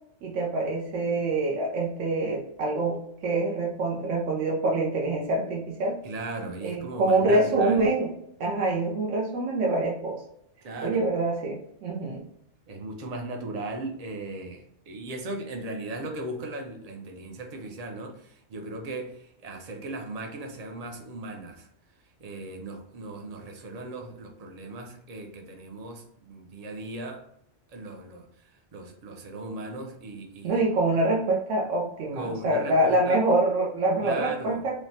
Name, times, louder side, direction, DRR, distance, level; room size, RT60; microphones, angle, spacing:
voice 1, 0.2-5.9 6.6-8.1 8.4-10.2 10.8-12.2 30.4-34.8, right 2 dB, 85° right, -2 dB, 0.9 m, -25 dB
voice 2, 6.0-8.0 10.6-11.0 12.7-21.7 22.2-27.2 27.7-30.6 32.1-33.2 34.0-34.6, right 2 dB, 50° right, 2 dB, 0.5 m, -37 dB
3.2 x 2.0 x 2.6 m, 0.75 s
omnidirectional pair, 1.2 m